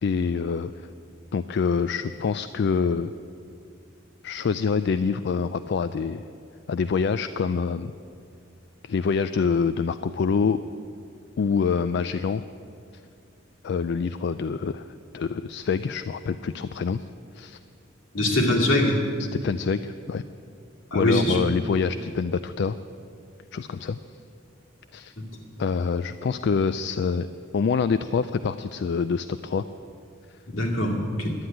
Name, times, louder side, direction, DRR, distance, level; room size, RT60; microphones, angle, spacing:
voice 1, 0.0-0.9 1.3-3.1 4.2-6.2 6.7-7.9 8.8-10.6 11.4-12.4 13.6-14.9 15.1-17.0 17.3-17.6 19.4-20.2 20.9-22.8 23.5-24.0 24.9-25.1 25.6-27.3 27.5-29.6, left 5 dB, 55° left, 12 dB, 0.3 m, -26 dB
voice 2, 18.1-18.9 20.9-21.4 30.5-31.3, left 1 dB, 75° left, -2 dB, 2.4 m, -22 dB
11.5 x 9.6 x 9.1 m, 2.3 s
head